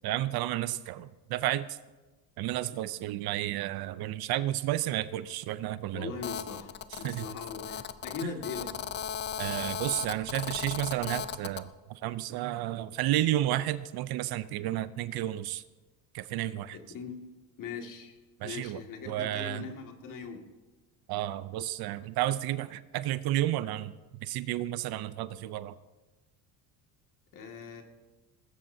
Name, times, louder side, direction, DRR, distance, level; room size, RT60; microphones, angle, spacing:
voice 1, 0.0-1.8 2.4-6.1 7.0-7.3 9.4-15.6 16.1-16.8 18.4-19.7 21.1-23.9 24.2-25.7, right 14 dB, 60° right, 15 dB, 0.6 m, -32 dB
voice 2, 5.9-8.7 16.7-17.2 17.6-18.2 18.4-20.5 27.3-27.8, left 5 dB, 45° left, 2 dB, 2.1 m, -40 dB
Telephone, 6.2-11.6, left 8 dB, 25° left, 0.4 m, -37 dB
19.5 x 16.0 x 2.7 m, 1.2 s
cardioid pair, 145°, 42 cm